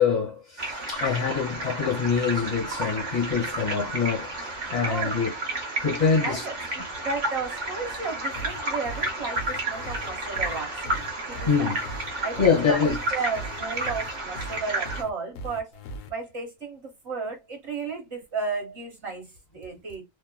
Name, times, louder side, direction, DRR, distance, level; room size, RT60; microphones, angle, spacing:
voice 1, 0.0-5.3 5.8-6.4 11.5-11.8 12.4-13.0, left 6 dB, 35° left, 1.3 m, -25 dB
sound 1, 0.6-15.0, right 2 dB, 40° right, 0.9 m, -32 dB
voice 2, 4.8-5.3 6.2-11.7 12.2-15.7 16.1-20.0, right 4 dB, 65° right, 1.2 m, -34 dB
sound 2, 8.4-16.1, right 1 dB, 80° left, 0.9 m, -38 dB
2.7 x 2.4 x 2.2 m
omnidirectional pair, 1.3 m